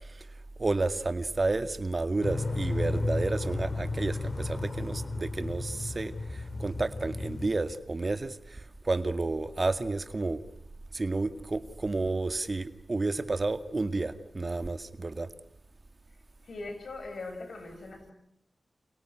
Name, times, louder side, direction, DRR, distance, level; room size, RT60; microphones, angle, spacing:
voice 1, 0.6-10.4 10.9-15.3, right 3 dB, 45° right, 10 dB, 2.0 m, -31 dB
sound 1, 2.2-7.5, left 2 dB, 55° left, 4.5 m, -33 dB
voice 2, 16.4-18.1, left 3 dB, 75° left, 6 dB, 7.9 m, -40 dB
30.0 x 29.0 x 6.4 m, 0.76 s
cardioid pair, 45°, 0 cm